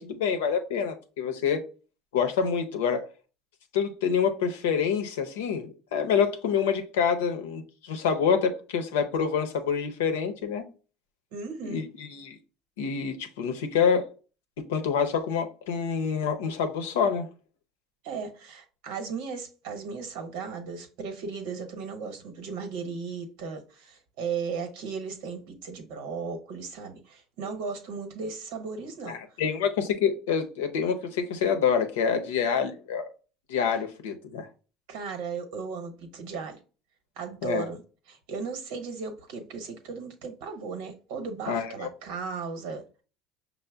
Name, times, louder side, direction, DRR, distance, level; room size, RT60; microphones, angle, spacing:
voice 1, 0.0-1.6 2.1-3.1 3.7-10.6 11.6-12.4 12.8-14.1 14.7-17.3 29.1-33.1 33.5-34.5 37.4-37.7 41.5-41.9, left 6 dB, 85° left, 0.7 m, -27 dB
voice 2, 11.3-11.8 18.0-29.2 34.9-36.6 37.2-37.8 38.1-42.8, right 5 dB, 75° right, 1.0 m, -36 dB
5.5 x 2.1 x 3.4 m
supercardioid pair, 90°, 0 cm